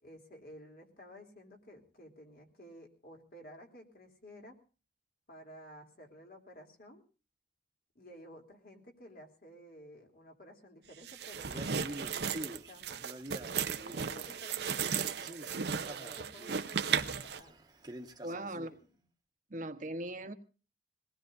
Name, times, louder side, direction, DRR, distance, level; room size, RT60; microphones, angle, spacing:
voice 1, 0.0-4.6 5.3-7.0 7.9-17.5 18.3-19.0, equal, 55° left, 2 dB, 3.2 m, -53 dB
sound 1, 11.0-17.4, right 7 dB, 65° right, 0.7 m, -35 dB
Male speech man speaking, 11.4-14.4 14.7-18.8, right 1 dB, 25° right, 1.2 m, -47 dB
voice 2, 18.2-18.7 19.5-20.3, right 1 dB, 50° right, 7 dB, 1.1 m, -39 dB
22.0 x 18.5 x 2.6 m, 0.35 s
head